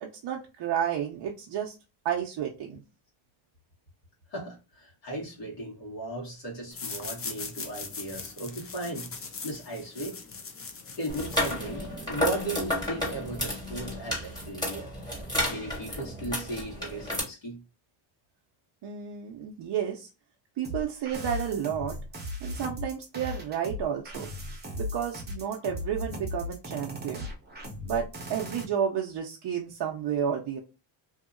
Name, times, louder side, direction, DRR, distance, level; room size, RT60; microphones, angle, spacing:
voice 1, 0.0-1.7 2.0-2.8 18.8-20.1 20.6-22.0 22.4-24.3 24.7-27.3 27.8-30.6, right 8 dB, 55° right, 0.6 m, -31 dB
voice 2, 4.3-9.1 9.4-10.2 11.0-14.9 15.5-17.6, right 1 dB, 55° left, 1.5 m, -36 dB
sound 1, 6.7-12.0, left 5 dB, 30° left, 0.6 m, -40 dB
sound 2, 11.1-17.2, left 1 dB, 10° left, 1.7 m, -32 dB
sound 3, 20.6-28.6, left 1 dB, 20° right, 0.8 m, -37 dB
2.7 x 2.7 x 2.5 m
cardioid pair, 105°, 49 cm